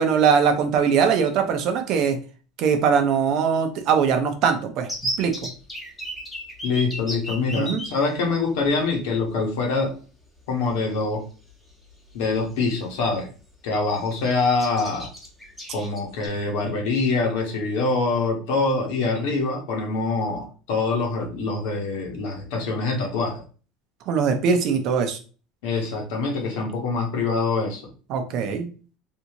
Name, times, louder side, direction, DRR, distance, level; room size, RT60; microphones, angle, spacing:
voice 1, 0.0-2.2 2.6-4.9 5.2-5.5 7.6-7.8 24.1-25.2 28.1-28.7, right 6 dB, 50° right, 6 dB, 0.7 m, -21 dB
sound 1, 4.8-7.9 8.9-9.0 9.3-9.4 11.1-11.2 11.6-11.9 12.3-13.0 13.4-13.5 13.8-14.2 14.6-16.3, equal, 5° left, 1.1 m, -33 dB
voice 2, 6.6-9.9 10.5-11.3 12.1-13.3 13.6-15.1 15.7-23.4 25.6-27.9, left 3 dB, 75° left, 2 dB, 1.2 m, -24 dB
3.3 x 2.7 x 2.9 m, 0.37 s
cardioid pair, 145°, 0 cm